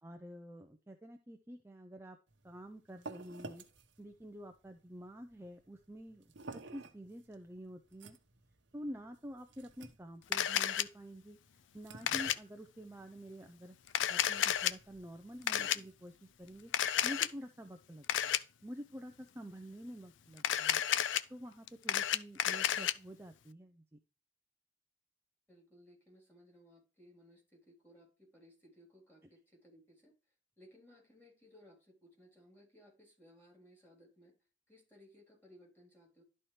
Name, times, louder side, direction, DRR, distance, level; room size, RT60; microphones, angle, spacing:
voice 1, 0.0-2.2 2.4-3.6 4.0-6.2 6.5-8.2 8.7-13.8 14.1-16.7 17.0-18.4 18.6-20.8 21.3-23.8, equal, 15° right, 5 dB, 0.5 m, -48 dB
sound 1, 2.3-17.3, right 3 dB, 75° right, 1.0 m, -54 dB
Camera, 10.3-10.8 12.1-12.4 13.9-14.7 15.5-15.8 16.7-17.3 18.1-18.4 20.4-21.2 21.7-22.9, left 10 dB, 80° left, 0.4 m, -31 dB
voice 2, 25.5-30.1 30.6-34.3 34.7-36.2, equal, 10° left, -2 dB, 3.4 m, -62 dB
11.5 x 4.3 x 3.2 m, 0.35 s
head